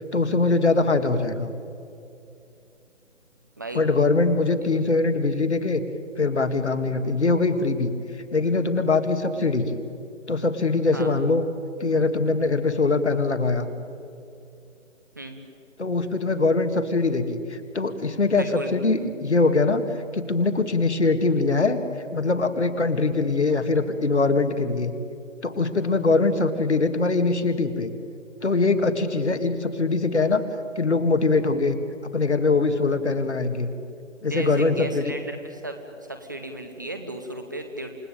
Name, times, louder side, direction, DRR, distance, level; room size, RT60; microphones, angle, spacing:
voice 1, 0.1-1.5 3.7-5.8 6.2-7.9 8.3-9.8 10.3-11.5 11.8-13.7 15.8-19.8 20.1-21.8 22.1-24.9 25.4-27.9 28.4-30.4 30.8-31.8 32.1-33.7 34.2-35.1, left 3 dB, 60° left, 8 dB, 2.1 m, -22 dB
voice 2, 18.3-18.7 34.2-35.8 36.1-37.9, right 2 dB, 15° right, 5 dB, 0.8 m, -35 dB
28.5 x 17.5 x 9.1 m, 2.6 s
figure-of-eight pair, 150°, 38 cm